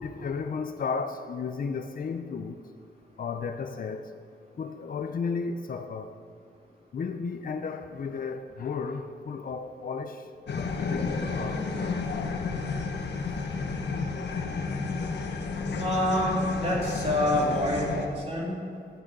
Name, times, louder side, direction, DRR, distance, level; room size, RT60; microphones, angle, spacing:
voice 1, 0.0-2.6 3.2-4.1 4.6-6.1 6.9-11.6 13.3-13.5 14.3-14.5, left 5 dB, 55° left, 0.6 m, -34 dB
sound 1, 10.5-18.1, left 4 dB, 80° left, 1.1 m, -31 dB
voice 2, 15.8-18.6, left 1 dB, 35° right, 2.9 m, -27 dB
12.5 x 8.9 x 5.4 m
wide cardioid pair, 165°, 18 cm